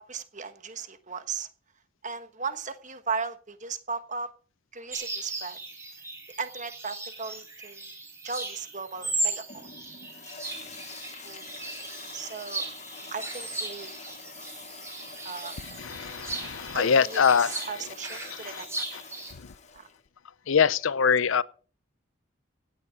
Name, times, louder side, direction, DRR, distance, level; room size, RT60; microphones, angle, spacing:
voice 1, 0.0-1.5 2.0-4.3 4.7-5.6 6.4-7.8 8.2-9.7 11.2-11.5 12.1-12.6 13.1-13.9 15.2-15.6 16.7-18.7 19.7-19.9, right 5 dB, 35° right, 1.3 m, -36 dB
sound 1, 4.9-19.3, right 2 dB, 15° right, 3.9 m, -37 dB
Toilet flush, 9.0-20.0, left 5 dB, 35° left, 1.2 m, -47 dB
voice 2, 15.8-17.7 18.4-18.6 20.5-21.4, left 6 dB, 70° left, 0.6 m, -23 dB
16.5 x 9.5 x 5.0 m
head